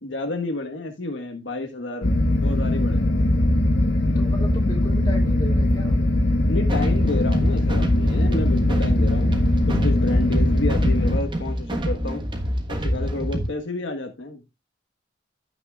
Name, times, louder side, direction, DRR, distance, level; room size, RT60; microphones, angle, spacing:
voice 1, 0.0-2.1 2.3-3.2 6.5-12.2 12.7-14.4, left 2 dB, 85° left, 3 dB, 1.5 m, -30 dB
sound 1, 2.0-11.2, left 1 dB, 70° left, 1.4 m, -20 dB
voice 2, 4.2-6.0, equal, 20° left, 0 dB, 3.4 m, -34 dB
sound 2, 6.7-13.5, equal, 25° right, 1.4 m, -28 dB
15.0 x 5.9 x 2.4 m, 0.24 s
head